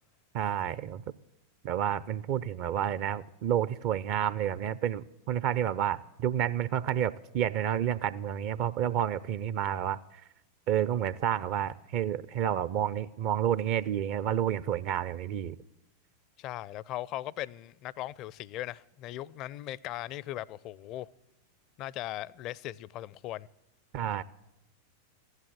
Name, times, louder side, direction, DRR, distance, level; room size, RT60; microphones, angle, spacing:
voice 1, 0.3-1.0 1.6-10.0 10.7-15.6 23.9-24.2, right 10 dB, 45° right, 0.5 m, -30 dB
voice 2, 16.4-21.1 21.8-23.5, left 14 dB, 40° left, 0.4 m, -38 dB
15.5 x 11.5 x 7.3 m
figure-of-eight pair, 90°, 0 cm